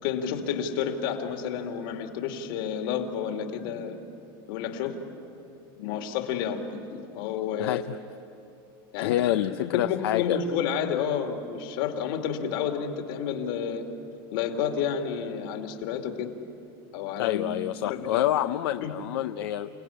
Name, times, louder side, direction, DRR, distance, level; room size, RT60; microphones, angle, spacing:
voice 1, 0.0-4.0 4.5-5.0 5.8-7.8 8.9-13.9 14.3-16.3 16.9-17.6 17.8-18.2 18.8-18.9, left 7 dB, 60° left, 4 dB, 2.7 m, -30 dB
voice 2, 7.6-8.0 9.0-10.4 17.2-19.7, left 13 dB, 80° left, 9 dB, 0.7 m, -27 dB
29.5 x 18.0 x 10.0 m, 2.7 s
supercardioid pair, 155°, 13 cm